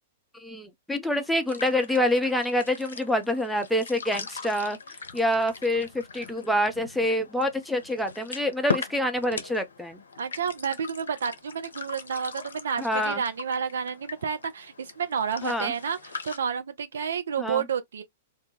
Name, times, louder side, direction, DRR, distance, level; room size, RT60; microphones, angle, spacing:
voice 1, 0.3-4.8 5.1-10.0 12.8-13.2 15.4-15.7 17.4-17.6, left 1 dB, ahead, 0.5 m, -26 dB
sound 1, 1.2-16.4, left 5 dB, 75° left, 0.5 m, -40 dB
voice 2, 10.2-18.0, right 7 dB, 70° right, 0.4 m, -30 dB
2.2 x 2.1 x 3.0 m
figure-of-eight pair, 105°, 0 cm